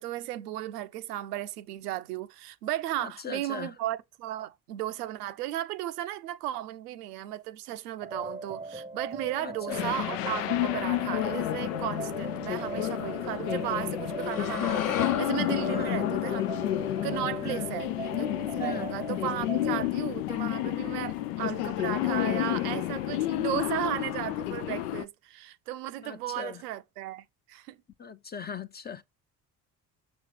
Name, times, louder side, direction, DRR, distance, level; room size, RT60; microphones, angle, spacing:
voice 1, 0.0-16.4 17.0-17.9 18.2-27.8, right 13 dB, 75° right, 0.7 m, -35 dB
voice 2, 3.0-3.7 9.3-9.9 15.6-16.1 17.4-17.7 18.6-18.9 26.0-26.6 28.0-29.0, left 7 dB, 20° left, 0.6 m, -39 dB
sound 1, 8.0-19.9, right 2 dB, 10° right, 0.8 m, -39 dB
sound 2, 9.7-25.1, left 15 dB, 75° left, 0.6 m, -30 dB
sound 3, 14.2-18.4, left 10 dB, 45° left, 1.0 m, -36 dB
6.3 x 5.8 x 3.3 m
figure-of-eight pair, 50°, 47 cm